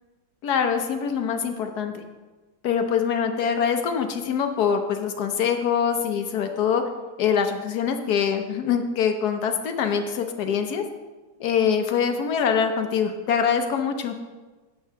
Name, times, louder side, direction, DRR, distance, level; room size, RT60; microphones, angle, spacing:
voice 1, 0.4-2.0 2.6-6.8 7.2-10.8 11.4-14.1, left 7 dB, 60° left, 6 dB, 1.2 m, -24 dB
8.6 x 6.2 x 5.6 m, 1.2 s
omnidirectional pair, 2.1 m